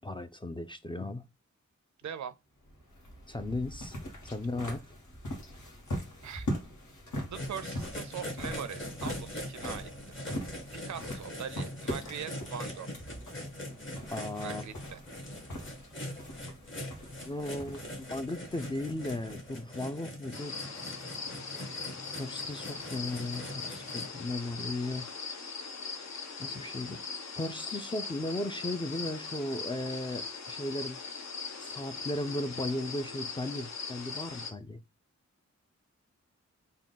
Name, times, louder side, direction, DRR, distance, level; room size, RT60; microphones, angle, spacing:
voice 1, 0.0-1.2 3.3-3.9 4.2-4.8 14.1-14.6 17.2-20.6 22.2-25.1 26.4-27.0 27.4-31.0 31.6-34.8, left 2 dB, 15° left, 0.4 m, -36 dB
voice 2, 2.0-2.4 6.2-6.5 7.2-10.2 10.7-12.9 14.4-15.0, right 8 dB, 75° right, 0.5 m, -41 dB
sound 1, 2.6-20.2, equal, 80° left, 1.3 m, -42 dB
sound 2, 7.3-24.1, left 1 dB, 40° left, 1.3 m, -42 dB
sound 3, 20.3-34.5, left 4 dB, 65° left, 0.7 m, -40 dB
3.6 x 2.3 x 3.8 m
wide cardioid pair, 75°, 29 cm